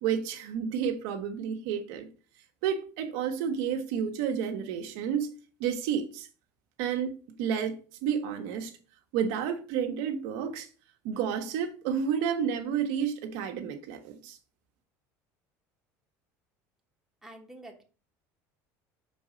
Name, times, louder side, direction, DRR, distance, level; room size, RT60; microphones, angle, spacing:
voice 1, 0.0-2.1 2.6-5.3 5.6-6.3 6.8-8.7 9.1-10.7 11.0-14.4, right 8 dB, 75° right, 1.1 m, -31 dB
voice 2, 17.2-17.8, right 1 dB, 5° right, 1.3 m, -47 dB
5.3 x 4.2 x 4.9 m
cardioid pair, 135°, 7 cm